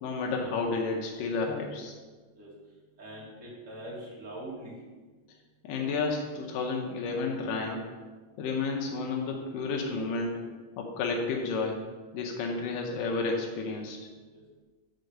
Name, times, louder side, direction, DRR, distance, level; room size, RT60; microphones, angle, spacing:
voice 1, 0.0-1.9 5.6-7.9 8.4-10.4 10.8-11.8 12.1-14.0, left 4 dB, 85° left, 1 dB, 2.5 m, -31 dB
voice 2, 3.0-4.8 14.3-14.4, right 1 dB, 25° right, -5 dB, 2.2 m, -42 dB
7.8 x 4.7 x 6.6 m, 1.3 s
omnidirectional pair, 3.8 m